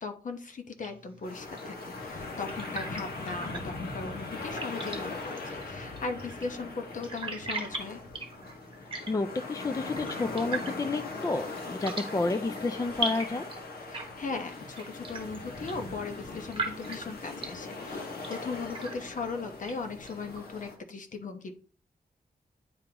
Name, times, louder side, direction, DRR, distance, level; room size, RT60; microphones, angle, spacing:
voice 1, 0.0-8.0 13.9-21.5, left 4 dB, 55° left, 6 dB, 1.0 m, -38 dB
sound 1, 0.8-20.7, right 2 dB, 35° right, 1.2 m, -42 dB
sound 2, 1.2-20.7, left 3 dB, 85° left, 1.6 m, -40 dB
voice 2, 9.1-13.4, left 3 dB, 20° left, 9 dB, 0.4 m, -30 dB
9.6 x 3.8 x 2.9 m, 0.41 s
wide cardioid pair, 160°, 16 cm